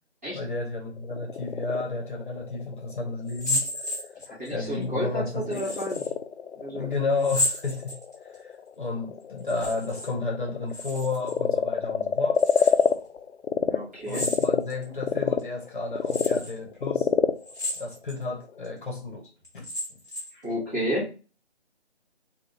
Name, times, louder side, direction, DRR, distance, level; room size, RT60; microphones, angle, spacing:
voice 1, 0.3-3.6 4.5-5.7 6.5-8.0 8.4-12.7 14.1-17.1 17.8-19.3 19.5-19.6 19.9-20.0 20.3-20.5, left 3 dB, 50° left, 1.0 m, -32 dB
Frog, 0.9-13.8 14.1-18.8, left 7 dB, 80° left, 0.6 m, -28 dB
sound 1, 3.3-4.5 5.5-6.1 7.2-8.4 9.4-10.1 10.4-11.4 12.3-12.9 14.1-14.8 15.4-15.5 16.1-16.5 17.4-18.2 18.6-18.7 19.4-20.4, left 1 dB, 15° left, 0.7 m, -32 dB
voice 2, 4.3-6.0 6.6-6.9 13.7-14.3 20.4-21.1, equal, 15° right, 1.0 m, -31 dB
3.5 x 2.3 x 2.7 m
hypercardioid pair, 170°, 34 cm